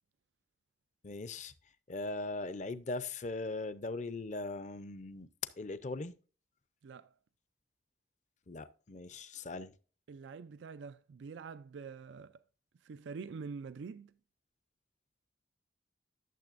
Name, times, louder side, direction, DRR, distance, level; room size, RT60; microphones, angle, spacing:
voice 1, 1.0-1.5 1.9-5.3 5.6-6.1 8.5-9.7, left 2 dB, 40° left, 0.6 m, -40 dB
voice 2, 10.1-12.4 12.8-14.1, right 5 dB, 80° right, 0.4 m, -45 dB
12.0 x 6.8 x 2.5 m
head